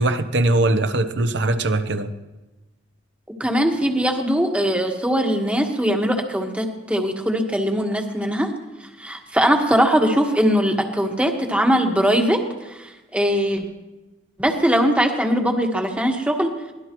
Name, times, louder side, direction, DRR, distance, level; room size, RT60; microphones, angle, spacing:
voice 1, 0.0-2.1, right 2 dB, 60° right, 1.0 m, -21 dB
voice 2, 3.4-8.5 9.0-12.4 12.7-13.6 14.4-16.5, equal, 5° right, 1.5 m, -21 dB
23.5 x 18.0 x 3.1 m
head